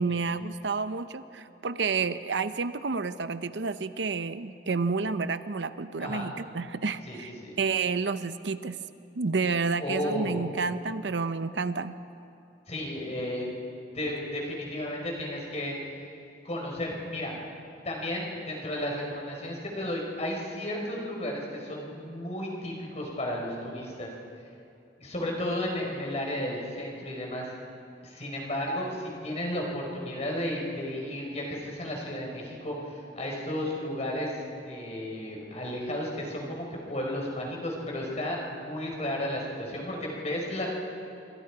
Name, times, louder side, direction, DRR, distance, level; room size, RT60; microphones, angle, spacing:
voice 1, 0.0-8.8 9.1-11.9, right 4 dB, 70° right, 12 dB, 0.7 m, -30 dB
voice 2, 9.8-10.4 12.7-13.5 13.9-15.7 16.4-17.3 17.8-24.1 25.0-27.5 28.0-34.4 34.6-40.7, left 1 dB, 35° left, -1 dB, 4.9 m, -33 dB
27.5 x 24.5 x 4.9 m, 2.6 s
head